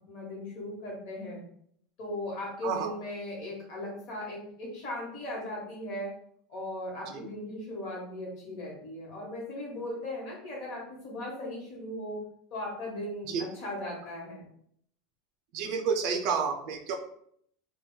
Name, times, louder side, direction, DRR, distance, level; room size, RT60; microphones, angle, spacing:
voice 1, 0.1-1.4 2.0-6.1 6.5-12.2 12.5-14.5, left 1 dB, 45° left, -2 dB, 1.0 m, -38 dB
voice 2, 15.5-17.0, right 6 dB, 40° right, 4 dB, 0.3 m, -30 dB
2.3 x 2.1 x 3.7 m, 0.66 s
supercardioid pair, 175°, 0 cm